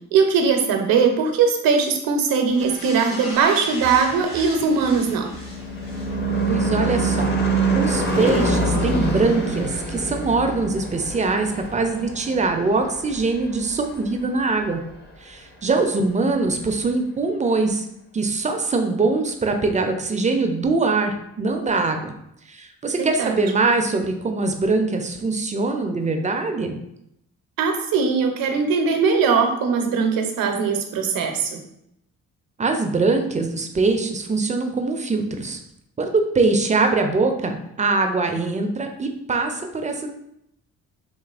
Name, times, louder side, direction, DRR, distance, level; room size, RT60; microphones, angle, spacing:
voice 1, 0.1-5.3 23.0-23.4 27.6-31.6, right 5 dB, 70° right, 4 dB, 0.6 m, -20 dB
sound 1, 2.5-7.0 7.4-7.5, left 1 dB, 65° left, 1.0 m, -38 dB
Car passing by / Truck / Engine, 4.8-13.5, right 2 dB, 30° left, 0.6 m, -24 dB
voice 2, 6.5-7.3 7.7-14.8 15.2-17.9 18.1-22.1 22.5-26.7 32.6-35.6 36.0-40.1, right 3 dB, 20° right, 5 dB, 0.4 m, -22 dB
2.8 x 2.5 x 2.3 m, 0.78 s
supercardioid pair, 55°, 35 cm